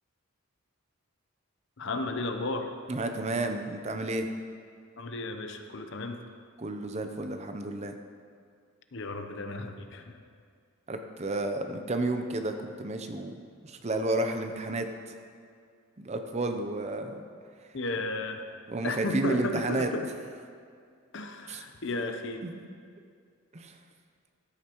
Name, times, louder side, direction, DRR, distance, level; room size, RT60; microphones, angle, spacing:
voice 1, 1.8-2.7 5.0-6.2 8.9-10.2 17.7-18.5 18.8-20.1 21.1-22.5, left 2 dB, 60° left, 6 dB, 0.8 m, -34 dB
voice 2, 2.9-4.3 6.6-7.9 10.9-13.3 13.6-14.9 16.0-17.3 18.7-19.9 21.5-21.6 22.4-22.6 23.5-23.7, right 2 dB, 30° right, 6 dB, 0.6 m, -31 dB
14.0 x 9.7 x 3.0 m, 2.3 s
head